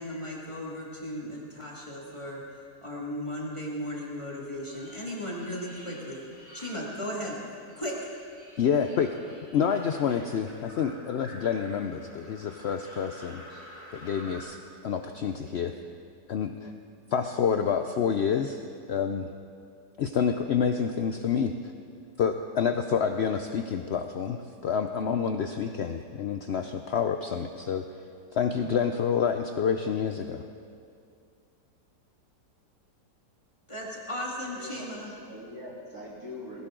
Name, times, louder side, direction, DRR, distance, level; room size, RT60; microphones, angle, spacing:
voice 1, 0.0-6.2 6.5-7.4 7.8-8.0 33.7-35.1, equal, 20° left, -4 dB, 2.1 m, -36 dB
sound 1, 4.7-7.4 7.7-14.4, equal, 20° right, 5.3 m, -50 dB
voice 2, 8.6-9.1 9.5-13.4 13.9-14.6 14.8-15.7 16.3-16.7 17.1-18.6 18.9-19.3 20.0-21.5 22.2-27.8 28.3-30.4, left 7 dB, 75° left, 7 dB, 0.6 m, -28 dB
voice 3, 34.5-36.7, left 1 dB, 60° right, -6 dB, 4.0 m, -43 dB
19.5 x 16.5 x 3.8 m, 2.4 s
omnidirectional pair, 1.8 m